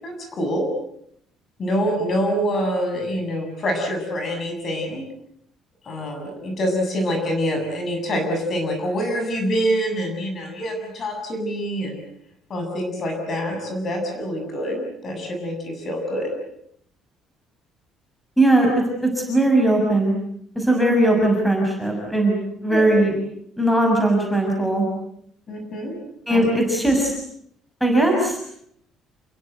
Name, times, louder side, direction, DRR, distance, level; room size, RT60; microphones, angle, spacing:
voice 1, 0.0-0.7 1.6-5.0 5.8-12.0 12.5-16.3 22.7-22.8 25.5-26.0 26.3-26.4, equal, 30° left, 4 dB, 7.2 m, -25 dB
voice 2, 18.4-20.1 20.5-23.2 23.6-24.8 26.3-27.1 27.8-28.4, right 1 dB, ahead, 1 dB, 6.3 m, -19 dB
29.0 x 22.5 x 8.1 m, 0.71 s
cardioid pair, 175°, 0 cm